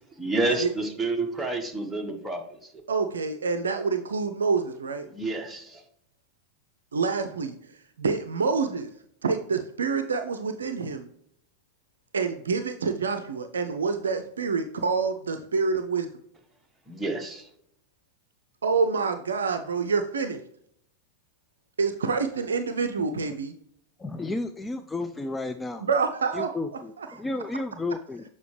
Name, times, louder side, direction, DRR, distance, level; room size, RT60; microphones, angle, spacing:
voice 1, 0.2-2.4 5.1-5.8 16.9-17.5, right 2 dB, 5° right, 2 dB, 1.1 m, -29 dB
voice 2, 2.9-5.1 6.9-8.9 9.2-11.1 12.1-16.1 18.6-20.4 21.8-23.5 25.8-26.5 27.0-27.2, right 5 dB, 70° right, 8 dB, 0.5 m, -27 dB
voice 3, 24.0-25.9 26.3-28.2, left 2 dB, 10° left, 7 dB, 0.3 m, -32 dB
6.9 x 5.3 x 3.2 m, 0.70 s
figure-of-eight pair, 90°, 0 cm